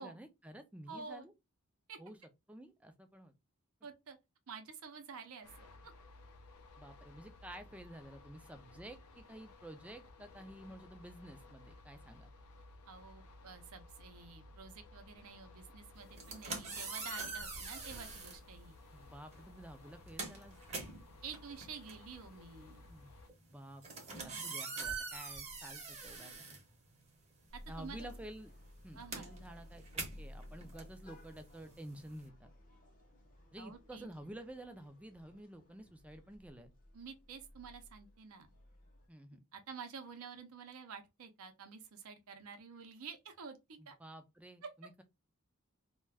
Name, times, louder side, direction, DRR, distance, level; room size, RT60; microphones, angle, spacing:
voice 1, 0.0-1.3 2.0-2.2 2.5-3.3 6.8-12.3 18.9-20.6 22.9-23.1 23.5-26.6 27.7-28.5 28.8-32.5 33.5-36.7 39.1-39.4 43.8-45.0, right 1 dB, 5° right, 0.3 m, -51 dB
voice 2, 0.9-1.3 1.9-2.0 3.8-4.2 4.5-5.9 12.9-18.8 21.2-22.9 27.5-28.1 29.0-29.3 33.6-34.1 36.9-38.5 39.5-44.0 44.6-44.7, right 5 dB, 70° right, 0.5 m, -50 dB
sound 1, 5.4-23.3, left 2 dB, 85° left, 0.5 m, -57 dB
sound 2, 16.0-18.4 19.3-19.5 19.8-27.3 27.6-32.3, right 4 dB, 30° right, 0.7 m, -44 dB
sound 3, 27.5-39.1, left 1 dB, 40° left, 0.7 m, -56 dB
2.3 x 2.1 x 3.3 m
head